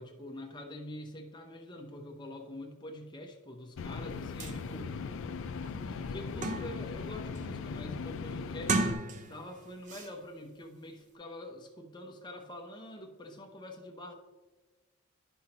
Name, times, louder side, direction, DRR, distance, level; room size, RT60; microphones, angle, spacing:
voice 1, 0.0-4.9 5.8-14.2, left 1 dB, 20° left, 2 dB, 0.7 m, -45 dB
sound 1, 3.8-8.9, left 5 dB, 60° left, 0.4 m, -39 dB
sound 2, 4.1-4.2 4.4-4.6 5.1-5.2 5.6-7.0 7.4-7.7 8.5-9.5 9.9-10.1, right 3 dB, 35° right, 0.5 m, -34 dB
10.5 x 5.6 x 2.9 m, 1.3 s
head